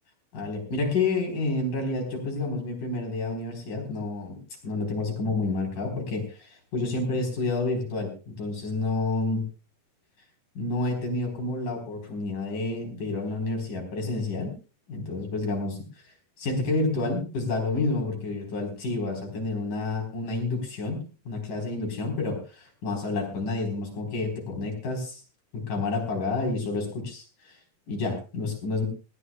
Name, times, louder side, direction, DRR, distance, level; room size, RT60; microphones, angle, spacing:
voice 1, 0.3-9.4 10.6-14.5 14.9-15.8 16.4-25.2 25.5-27.5 27.9-28.9, left 3 dB, 75° left, 2 dB, 5.9 m, -29 dB
20.0 x 17.5 x 2.4 m, 0.32 s
omnidirectional pair, 3.7 m